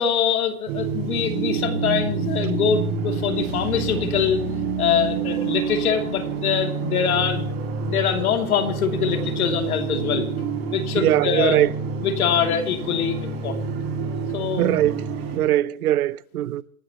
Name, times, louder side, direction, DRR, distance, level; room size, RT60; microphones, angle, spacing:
voice 1, 0.0-4.4 4.8-7.5 7.8-10.3 10.7-11.6 12.0-13.7 14.3-14.7, left 7 dB, 75° left, 2.9 m, -24 dB
sound 1, 0.7-15.4, right 5 dB, 35° right, 5.7 m, -28 dB
voice 2, 10.9-11.7 14.6-15.1 15.3-16.6, right 13 dB, 85° right, 0.8 m, -21 dB
27.0 x 13.0 x 3.0 m
supercardioid pair, 170°, 43 cm